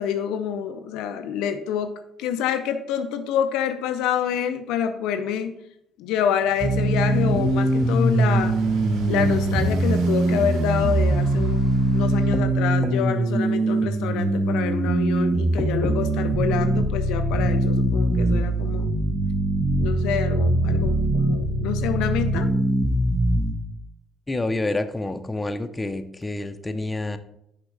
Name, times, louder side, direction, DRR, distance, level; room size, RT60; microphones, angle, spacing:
voice 1, 0.0-1.9 2.2-5.6 6.0-8.6 9.1-11.6 11.9-18.9 19.8-22.5, left 8 dB, 70° left, 8 dB, 0.4 m, -27 dB
Motorcycle, 6.4-12.4, right 4 dB, 65° right, 0.6 m, -37 dB
sound 1, 6.6-23.5, right 2 dB, 30° right, 1.0 m, -22 dB
voice 2, 24.3-27.2, left 2 dB, 20° left, 9 dB, 0.6 m, -28 dB
6.1 x 5.0 x 3.2 m, 0.77 s
hypercardioid pair, 50°, 0 cm